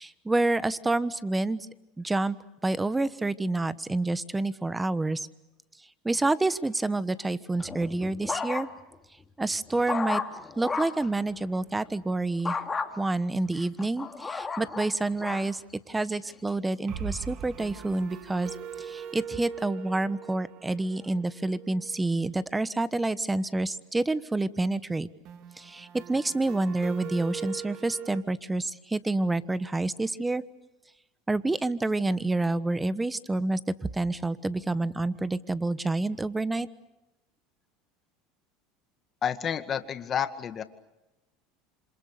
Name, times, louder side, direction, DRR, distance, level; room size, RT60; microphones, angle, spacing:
voice 1, 0.0-1.7 2.0-2.4 2.6-5.3 6.0-8.7 9.4-10.2 10.6-12.5 13.0-15.6 15.9-25.1 25.6-30.4 31.3-33.6 33.9-36.7, right 2 dB, 10° right, 15 dB, 1.2 m, -28 dB
sound 1, 7.6-9.0 9.4-11.1 12.5-12.9 13.5-15.5 16.1-16.5, left 4 dB, 20° left, 2.7 m, -33 dB
sound 2, 11.0-12.2 12.5-12.6 12.9-13.0 16.9-22.5 25.3-28.2, right 7 dB, 55° right, 2.4 m, -41 dB
voice 2, 39.2-40.6, left 8 dB, 35° left, 9 dB, 2.1 m, -30 dB
27.5 x 27.0 x 6.7 m, 0.99 s
supercardioid pair, 110°, 0 cm